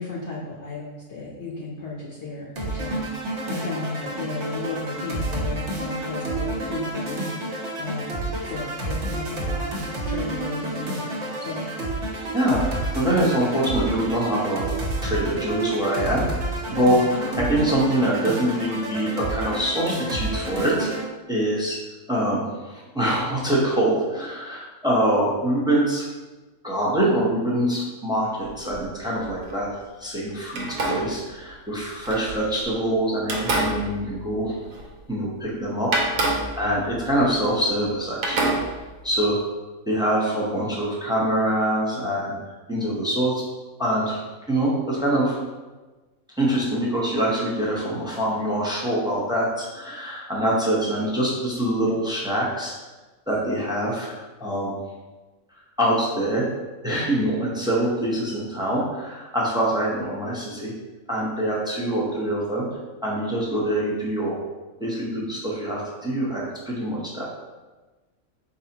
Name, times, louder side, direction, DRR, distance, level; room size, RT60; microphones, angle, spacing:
voice 1, 0.0-3.0 3.5-7.2 7.8-8.2 8.5-9.8 10.0-11.6, left 3 dB, 60° left, -4 dB, 1.0 m, -34 dB
sound 1, 2.6-21.0, right 1 dB, 60° right, 1.2 m, -29 dB
voice 2, 12.3-14.7 15.0-16.3 16.7-20.9 21.3-21.8 22.1-26.0 26.6-34.6 35.1-35.9 36.2-38.5 39.0-39.4 39.9-42.4 42.7-43.4 43.8-44.2 44.5-45.4 46.4-52.7 53.3-54.7 55.8-56.5 56.8-60.7 61.1-62.7 63.0-64.4 64.8-67.3, right 1 dB, 5° right, -5 dB, 0.6 m, -24 dB
sound 2, 28.4-29.6 30.5-32.7 33.2-35.1 35.4-35.5 35.9-37.9 38.2-39.2, right 2 dB, 80° right, 1.2 m, -28 dB
4.7 x 3.9 x 2.8 m, 1.2 s
omnidirectional pair, 1.4 m